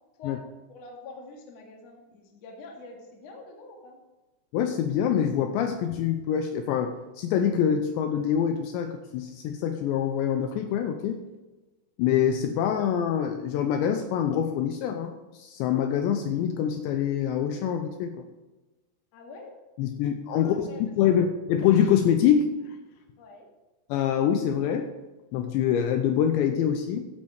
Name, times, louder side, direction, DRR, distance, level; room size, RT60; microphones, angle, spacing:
voice 1, 0.7-4.0 19.1-19.6 20.4-21.1 23.2-23.5, left 3 dB, 50° left, 0 dB, 2.1 m, -46 dB
voice 2, 4.5-11.2 12.0-18.3 19.8-22.8 23.9-24.9 25.3-27.1, left 9 dB, 85° left, 6 dB, 2.7 m, -25 dB
13.0 x 9.5 x 3.5 m, 1.1 s
omnidirectional pair, 5.6 m